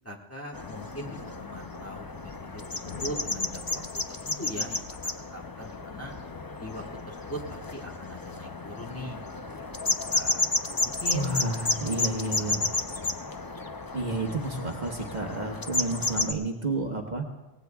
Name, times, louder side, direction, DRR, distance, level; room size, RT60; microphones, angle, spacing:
voice 1, 0.0-4.9 5.3-6.1 6.6-9.2 9.5-10.5 10.8-11.3 12.0-13.1, left 1 dB, 10° left, -3 dB, 1.6 m, -41 dB
sound 1, 0.5-16.3, left 3 dB, 30° left, 0.4 m, -32 dB
sound 2, 2.8-4.8, left 5 dB, 45° left, 0.9 m, -45 dB
voice 2, 11.1-12.6 13.9-17.2, right 2 dB, 40° right, 1 dB, 1.3 m, -30 dB
24.0 x 18.5 x 2.3 m, 1.1 s
omnidirectional pair, 1.2 m